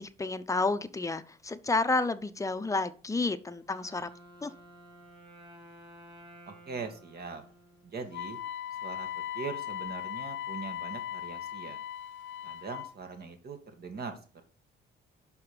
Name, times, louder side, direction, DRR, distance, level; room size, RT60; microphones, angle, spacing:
voice 1, 0.0-4.1 4.4-4.5, left 3 dB, 15° left, 10 dB, 0.8 m, -30 dB
Wind instrument woodwind instrument, 3.5-8.4, right 1 dB, 25° right, 3.3 m, -54 dB
voice 2, 6.5-7.4 7.8-8.4 8.8-9.1 9.3-11.8 12.4-14.2, right 5 dB, 50° right, 6 dB, 2.0 m, -41 dB
Wind instrument woodwind instrument 2, 8.1-12.9, left 11 dB, 75° left, 0.9 m, -38 dB
5.7 x 5.7 x 6.9 m, 0.40 s
cardioid pair, 90°, 20 cm